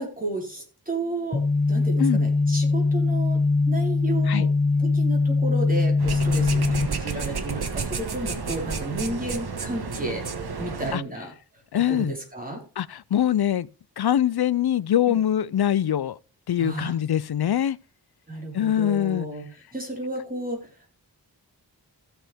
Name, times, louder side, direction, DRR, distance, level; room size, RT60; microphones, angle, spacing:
voice 1, 0.0-1.4 1.7-3.4 3.7-4.5 4.8-10.2 10.6-11.3 11.7-12.6 15.1-15.2 16.6-16.9 18.3-19.5 19.7-20.9, right 2 dB, 20° right, 4.5 m, -32 dB
sound 1, 1.3-6.9, left 3 dB, 25° left, 0.8 m, -22 dB
sound 2, 6.0-11.0, right 5 dB, 70° right, 1.4 m, -31 dB
sound 3, 6.5-11.0, left 2 dB, 5° right, 5.1 m, -48 dB
voice 2, 11.7-12.1 12.8-13.7 14.0-16.2 16.5-17.8 18.5-19.3, left 10 dB, 70° left, 0.6 m, -23 dB
16.0 x 6.8 x 3.5 m
wide cardioid pair, 90°, 39 cm